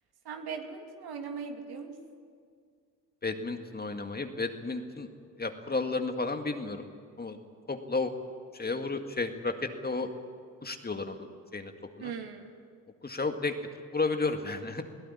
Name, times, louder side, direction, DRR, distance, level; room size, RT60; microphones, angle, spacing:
voice 1, 0.2-1.9 12.0-12.5, right 6 dB, 55° right, 4 dB, 3.0 m, -39 dB
voice 2, 3.2-5.1 5.4-6.8 7.2-7.4 7.7-8.1 8.5-10.1 10.6-11.3 11.5-11.7 12.0-12.1 13.0-13.5 13.9-14.8, left 3 dB, 20° left, 6 dB, 2.0 m, -32 dB
21.5 x 17.0 x 9.8 m, 2.1 s
hypercardioid pair, 60°, 45 cm